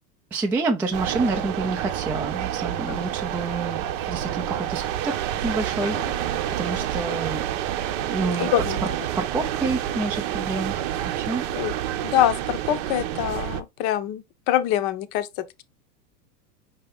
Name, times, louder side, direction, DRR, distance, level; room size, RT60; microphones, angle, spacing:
voice 1, 0.3-5.2 5.4-7.4 8.1-8.5 9.2-10.7 11.2-11.4, right 3 dB, 5° right, 0.3 m, -28 dB
sound 1, 0.9-13.6, right 11 dB, 50° right, 0.7 m, -28 dB
voice 2, 8.4-8.8 11.6-11.7 12.0-15.6, left 12 dB, 45° left, 0.7 m, -25 dB
5.4 x 2.8 x 3.4 m
hypercardioid pair, 105°, 48 cm